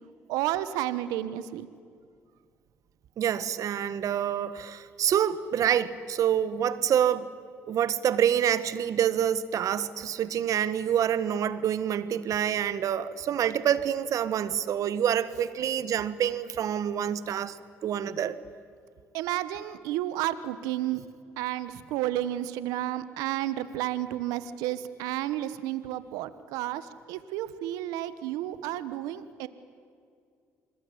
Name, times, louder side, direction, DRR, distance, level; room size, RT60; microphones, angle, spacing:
voice 1, 0.3-1.7 19.1-21.0 21.4-29.5, right 13 dB, 85° right, 14 dB, 1.1 m, -31 dB
voice 2, 3.2-7.3 7.7-17.6 17.8-18.4, right 9 dB, 65° right, 15 dB, 1.5 m, -27 dB
27.5 x 21.5 x 9.8 m, 2.3 s
supercardioid pair, 65°, 6 cm